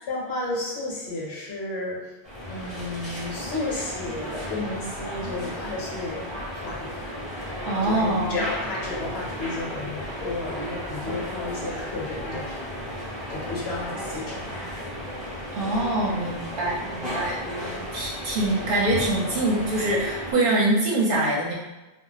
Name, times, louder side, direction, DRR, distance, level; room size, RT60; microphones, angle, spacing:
voice 1, 0.1-2.1 2.5-12.6 13.0-15.1 17.4-17.9, left 2 dB, 70° left, -4 dB, 1.1 m, -33 dB
sound 1, 2.2-20.3, equal, ahead, 0.6 m, -34 dB
voice 2, 7.7-8.4 15.5-17.4 17.9-21.5, right 2 dB, 60° right, -5 dB, 0.8 m, -24 dB
2.4 x 2.1 x 3.9 m, 1.1 s
omnidirectional pair, 1.1 m